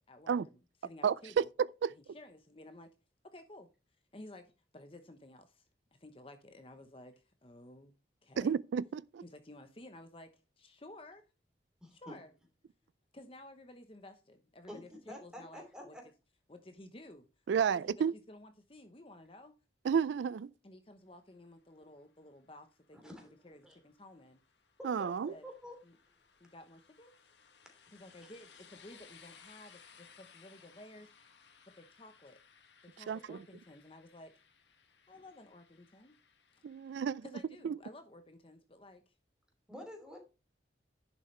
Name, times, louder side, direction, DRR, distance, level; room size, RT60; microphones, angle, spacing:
voice 1, 0.1-1.5 2.0-2.9 3.2-3.7 4.1-5.6 6.0-7.9 8.2-8.5 9.2-10.3 10.6-11.3 11.9-12.3 13.1-16.0 16.5-17.3 17.6-17.9 18.3-19.5 20.6-24.4 25.0-25.4 25.8-25.9 26.4-27.1 27.9-31.3 31.7-32.4 32.8-34.4 35.1-36.2 36.5-36.6 37.2-39.1, left 1 dB, 30° left, 0.9 m, -54 dB
voice 2, 1.0-1.4 1.8-1.9 8.4-9.2 17.5-18.1 19.8-20.5 24.8-25.3 33.1-33.4 36.6-37.2 37.6-37.7, right 7 dB, 75° right, 0.3 m, -31 dB
voice 3, 11.8-12.2 14.7-16.0 22.9-23.3 23.6-23.8 24.8-25.8 35.1-35.2 39.7-40.2, equal, 5° right, 3.0 m, -49 dB
sound 1, 22.0-36.9, left 6 dB, 75° left, 1.8 m, -62 dB
11.0 x 7.2 x 3.3 m
head